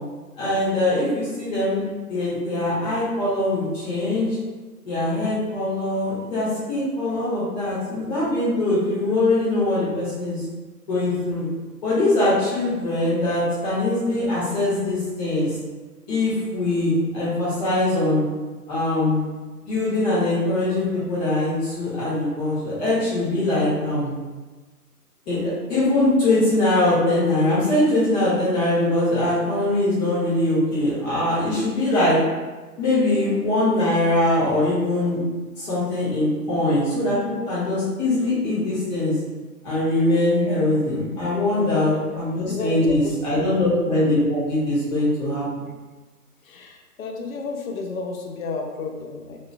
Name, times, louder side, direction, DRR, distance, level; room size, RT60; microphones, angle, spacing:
voice 1, 0.4-1.8 2.1-4.3 4.8-10.4 10.9-11.4 11.8-15.5 16.1-18.2 18.7-19.2 19.7-24.1 25.3-32.2 32.8-35.2 35.6-37.2 37.5-39.1 39.6-45.4, left 1 dB, 25° left, -10 dB, 1.4 m, -22 dB
voice 2, 42.5-43.1 43.5-43.7 46.4-49.4, left 4 dB, 55° left, 2 dB, 0.7 m, -32 dB
3.9 x 2.9 x 2.2 m, 1.3 s
hypercardioid pair, 150°, 49 cm